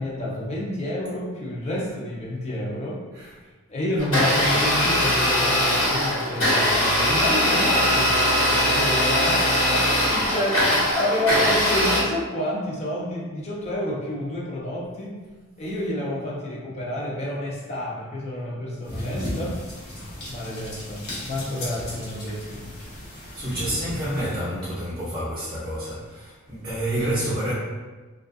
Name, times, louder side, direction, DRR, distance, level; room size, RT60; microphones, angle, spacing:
voice 1, 0.0-3.0 3.7-15.2 15.6-19.6 20.3-22.7, left 1 dB, 30° left, -4 dB, 0.4 m, -29 dB
Domestic sounds home sounds, 4.0-12.0, equal, 75° left, 1.2 m, -21 dB
sound 1, 18.8-24.3, left 1 dB, 55° left, 0.7 m, -35 dB
voice 2, 23.1-27.5, right 1 dB, 20° right, -9 dB, 0.5 m, -29 dB
2.3 x 2.2 x 2.5 m, 1.3 s
head